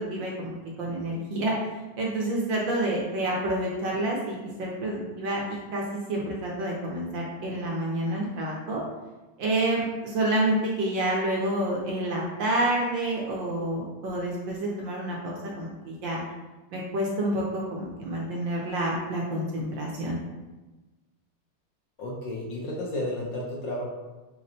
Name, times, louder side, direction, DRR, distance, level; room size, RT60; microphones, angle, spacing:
voice 1, 0.0-1.5 2.0-8.8 9.4-16.2 16.7-20.2, right 1 dB, 70° right, -2 dB, 1.2 m, -28 dB
voice 2, 22.0-23.8, left 1 dB, 70° left, -3 dB, 1.2 m, -32 dB
5.7 x 2.0 x 2.6 m, 1.1 s
omnidirectional pair, 2.4 m